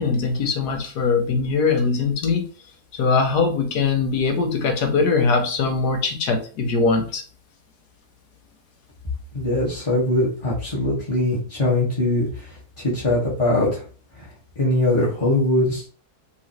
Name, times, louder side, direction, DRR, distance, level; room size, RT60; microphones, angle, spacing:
voice 1, 0.0-2.4 2.9-7.2, left 4 dB, 85° left, 5 dB, 1.5 m, -21 dB
voice 2, 9.3-13.8 14.1-14.3 14.5-15.9, left 1 dB, 20° left, -8 dB, 1.5 m, -22 dB
5.6 x 3.1 x 2.9 m, 0.41 s
omnidirectional pair, 1.7 m